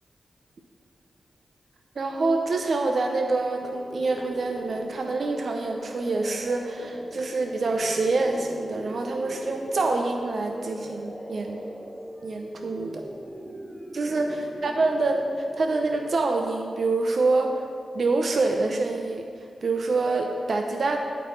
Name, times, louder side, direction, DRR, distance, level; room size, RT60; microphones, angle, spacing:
voice 1, 2.0-11.6 12.2-13.0 13.9-17.5 17.9-19.3 19.6-21.0, right 3 dB, 65° right, 3 dB, 0.7 m, -26 dB
sound 1, 3.6-16.4, equal, 15° right, 1.2 m, -40 dB
9.0 x 4.6 x 7.1 m, 2.2 s
cardioid pair, 45°, 0 cm